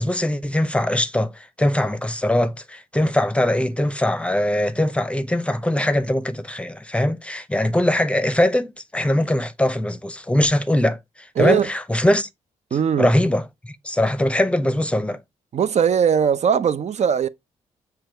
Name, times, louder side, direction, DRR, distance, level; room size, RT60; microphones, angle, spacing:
voice 1, 0.0-12.3 13.0-15.2, left 1 dB, 10° left, 0.7 m, -21 dB
voice 2, 11.4-11.7 12.7-13.1 15.5-17.3, right 7 dB, 50° right, 0.5 m, -19 dB
5.8 x 2.3 x 3.3 m
supercardioid pair, 60°, 15 cm